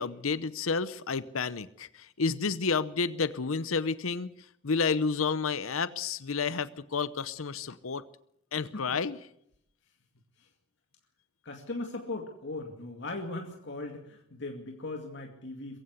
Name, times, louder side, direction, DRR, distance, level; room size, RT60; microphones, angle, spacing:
voice 1, 0.0-4.3 4.6-8.0 8.5-9.2, left 5 dB, 90° left, 16 dB, 0.8 m, -30 dB
voice 2, 8.5-8.9 10.4-10.5 11.4-15.8, left 2 dB, 60° left, 3 dB, 2.3 m, -39 dB
22.5 x 15.5 x 8.2 m, 0.73 s
head